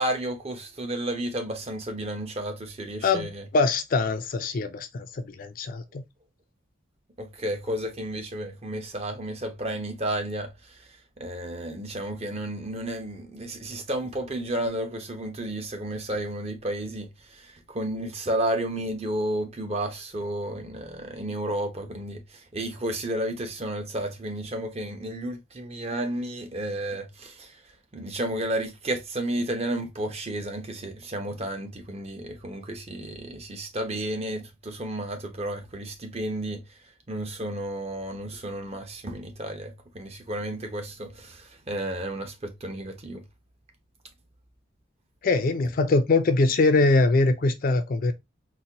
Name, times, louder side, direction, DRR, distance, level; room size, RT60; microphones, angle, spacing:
voice 1, 0.0-3.4 7.2-10.8 11.2-22.2 22.5-27.6 27.9-36.6 37.1-43.2, right 1 dB, 30° right, 0.7 m, -32 dB
voice 2, 3.0-6.0 45.2-48.1, left 3 dB, 45° left, 0.4 m, -23 dB
4.0 x 2.2 x 2.7 m
head